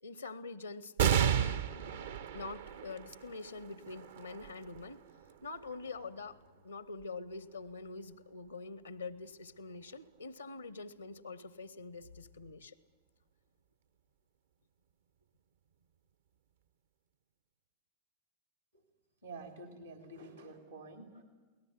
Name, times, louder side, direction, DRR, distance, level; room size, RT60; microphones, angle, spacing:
voice 1, 0.0-1.7 2.3-5.1 5.4-6.4 6.6-12.8, left 3 dB, 80° left, 19 dB, 0.7 m, -45 dB
sound 1, 1.0-7.9 8.5-8.6 9.7-10.3, right 8 dB, 60° right, 0.8 m, -35 dB
voice 2, 19.2-21.2, right 2 dB, 80° right, 6 dB, 3.2 m, -49 dB
23.0 x 18.0 x 8.2 m, 1.3 s
figure-of-eight pair, 90°, 0 cm